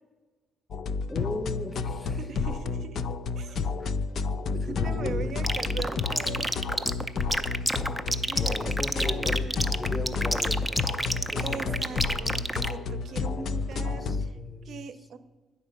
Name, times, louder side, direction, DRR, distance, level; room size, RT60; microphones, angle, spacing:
sound 1, 0.7-14.3, left 4 dB, 60° left, 0.3 m, -31 dB
voice 1, 1.1-2.2 3.4-3.9 4.7-6.2 8.3-12.0 13.3-14.9, left 2 dB, 20° left, 10 dB, 0.8 m, -38 dB
voice 2, 2.2-3.0 3.4-3.7 4.5-6.5 8.3-9.6 11.4-14.1 14.7-15.2, right 6 dB, 65° right, 11 dB, 0.5 m, -40 dB
sound 2, 5.4-12.7, right 1 dB, 5° right, 0.4 m, -29 dB
sound 3, 6.2-14.0, left 1 dB, 80° left, 1.9 m, -50 dB
8.8 x 4.2 x 6.5 m, 1.3 s
cardioid pair, 90°, 0 cm